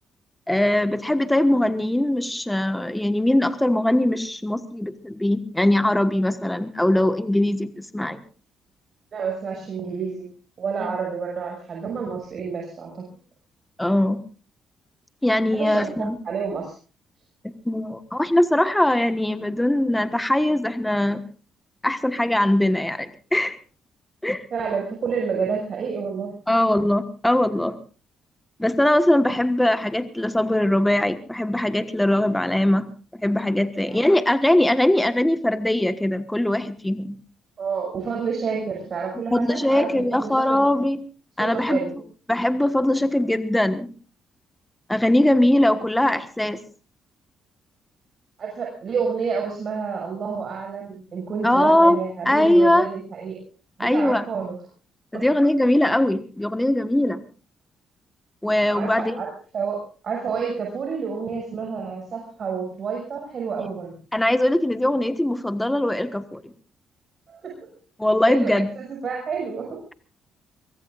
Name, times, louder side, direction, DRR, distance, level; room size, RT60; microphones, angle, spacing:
voice 1, 0.5-8.2 10.8-10.9 13.8-14.2 15.2-16.2 17.4-21.2 21.8-23.6 24.2-24.5 26.5-27.8 28.6-32.9 33.1-37.2 39.3-41.0 41.4-41.8 42.3-43.9 44.9-46.6 51.4-52.9 53.8-54.2 55.1-57.2 58.4-59.2 64.1-66.5 68.0-68.7, left 1 dB, 10° left, 10 dB, 1.3 m, -21 dB
voice 2, 9.1-10.3 10.6-13.0 15.5-16.7 24.5-26.4 33.8-34.0 37.6-40.6 41.4-42.0 48.4-53.4 53.8-54.5 55.1-55.2 58.7-63.9 67.3-67.7 68.3-69.8, right 5 dB, 50° right, 1 dB, 6.2 m, -29 dB
23.5 x 22.5 x 2.5 m, 0.37 s
cardioid pair, 90°, 0 cm